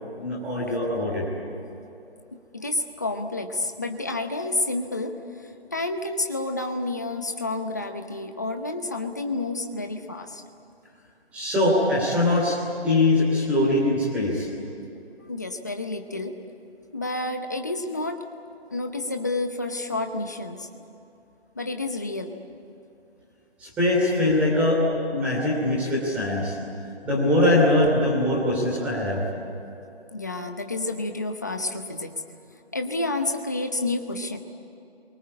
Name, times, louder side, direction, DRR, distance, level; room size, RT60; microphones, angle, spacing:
voice 1, 0.2-1.2 11.3-12.6 12.8-14.5 23.6-24.8 25.1-26.5 27.0-29.2, left 1 dB, 5° right, -5 dB, 3.0 m, -22 dB
voice 2, 2.3-10.4 15.3-16.4 16.9-18.2 18.7-20.7 21.6-22.4 30.1-32.1 32.7-34.4, left 2 dB, 15° left, 5 dB, 0.8 m, -30 dB
28.0 x 23.0 x 8.6 m, 2.8 s
figure-of-eight pair, 170°, 32 cm